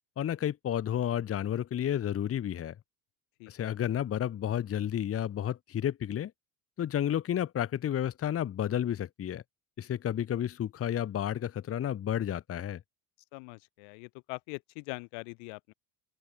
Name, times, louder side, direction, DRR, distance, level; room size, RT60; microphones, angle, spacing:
voice 1, 0.2-2.7 3.5-6.3 6.8-9.4 9.8-12.8, left 10 dB, 35° left, 1.4 m, -31 dB
voice 2, 3.4-3.8 13.3-15.7, left 40 dB or more, 85° left, 2.9 m, -43 dB
open air
cardioid pair, 135°, 42 cm